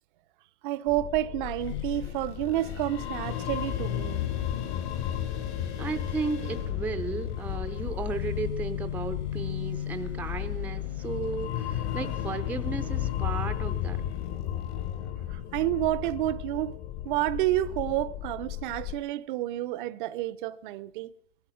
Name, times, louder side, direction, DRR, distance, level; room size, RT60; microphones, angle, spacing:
voice 1, 0.6-4.2 15.3-16.7 17.0-21.1, right 14 dB, 45° right, 0.6 m, -29 dB
sound 1, 0.9-18.9, left 11 dB, 40° left, 1.0 m, -35 dB
sound 2, 1.6-15.1, left 11 dB, 65° left, 4.4 m, -37 dB
voice 2, 5.8-14.0, right 4 dB, 5° right, 0.5 m, -34 dB
18.0 x 12.0 x 6.3 m
hypercardioid pair, 130°, 35 cm